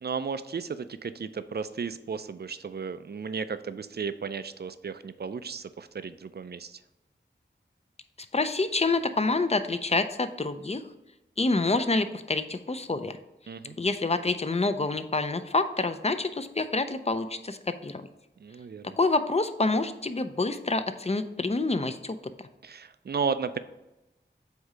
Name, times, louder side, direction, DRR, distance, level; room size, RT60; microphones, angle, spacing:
voice 1, 0.0-6.8 13.5-13.8 18.4-19.0 22.6-23.6, right 5 dB, 55° right, 12 dB, 0.4 m, -34 dB
voice 2, 8.3-10.8 11.4-13.2 13.8-18.1 19.0-22.2, left 3 dB, 35° left, 10 dB, 0.5 m, -27 dB
7.9 x 2.7 x 5.0 m, 0.99 s
wide cardioid pair, 55°, 19 cm